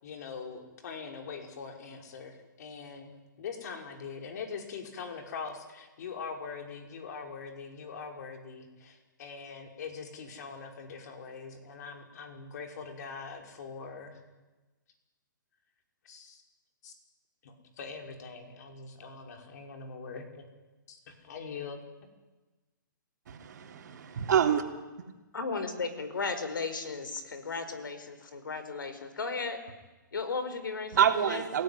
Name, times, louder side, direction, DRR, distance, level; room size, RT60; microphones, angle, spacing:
voice 1, 0.0-14.2 16.1-16.4 16.8-16.9 17.4-20.4 20.9-21.8, left 5 dB, 55° left, 4 dB, 5.5 m, -42 dB
voice 2, 23.3-24.6 30.9-31.6, right 8 dB, 60° right, 4 dB, 3.5 m, -26 dB
voice 3, 25.3-29.6 30.1-31.4, left 4 dB, 80° left, 10 dB, 4.8 m, -35 dB
28.5 x 18.0 x 9.8 m, 1.2 s
hypercardioid pair, 140°, 11 cm